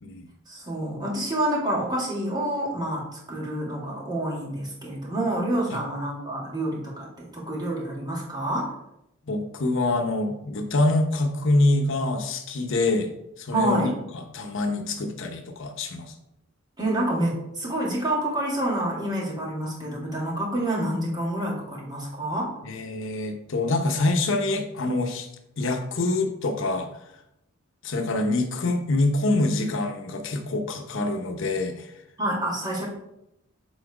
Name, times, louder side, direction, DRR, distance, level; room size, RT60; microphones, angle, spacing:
voice 1, 0.5-8.7 13.5-14.0 16.8-22.5 32.2-32.9, right 1 dB, 20° right, -4 dB, 2.2 m, -28 dB
voice 2, 9.3-13.1 13.4-16.1 22.6-25.3 25.6-26.9 27.8-31.9, left 2 dB, 65° left, 5 dB, 0.9 m, -25 dB
7.5 x 3.9 x 4.8 m, 0.82 s
head